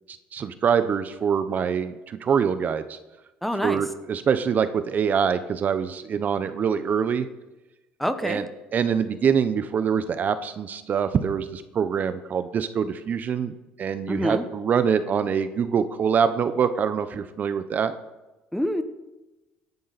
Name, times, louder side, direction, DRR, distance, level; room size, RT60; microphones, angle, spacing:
voice 1, 0.3-3.0 3.6-7.3 8.2-8.4 8.7-17.9, right 7 dB, 45° right, 11 dB, 0.9 m, -24 dB
voice 2, 3.4-3.8 8.0-8.4 14.1-14.4 18.5-18.8, equal, 5° left, 9 dB, 1.2 m, -26 dB
17.5 x 11.0 x 4.2 m, 1.0 s
cardioid pair, 105°, 4 cm